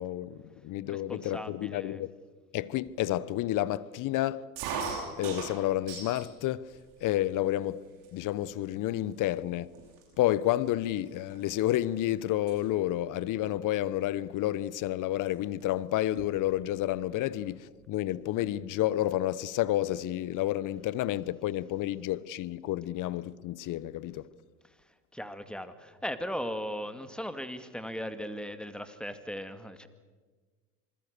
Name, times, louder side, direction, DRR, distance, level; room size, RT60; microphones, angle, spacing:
voice 1, 0.0-2.1 2.5-4.5 5.2-7.9 8.1-9.8 10.2-24.3, left 14 dB, 45° left, 1.0 m, -30 dB
voice 2, 0.9-2.0 24.6-29.9, equal, ahead, 2.1 m, -38 dB
sound 1, 4.6-6.3 6.7-7.4 8.0-8.1 8.4-8.8 9.4-9.5 9.7-12.0 12.3-12.6 13.9-14.2 15.3-15.4 15.6-15.7 16.0-16.8, right 5 dB, 60° right, 7.9 m, -39 dB
27.0 x 20.5 x 6.8 m
hypercardioid pair, 85°, 44 cm